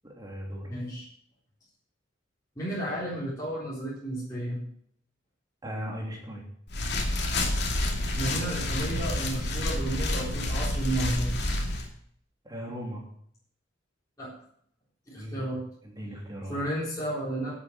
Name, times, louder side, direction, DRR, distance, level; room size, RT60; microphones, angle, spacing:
voice 1, 0.0-0.7 5.6-6.4 12.4-13.0 15.2-15.4 15.8-16.6, equal, 20° right, -1 dB, 3.0 m, -37 dB
voice 2, 0.7-1.0 2.6-4.6 8.1-11.3 14.2-14.3 15.1-15.6 16.5-17.5, right 1 dB, 20° left, -9 dB, 4.1 m, -32 dB
sound 1, 6.7-11.9, left 1 dB, 55° left, 2.6 m, -29 dB
12.0 x 8.0 x 7.4 m, 0.65 s
head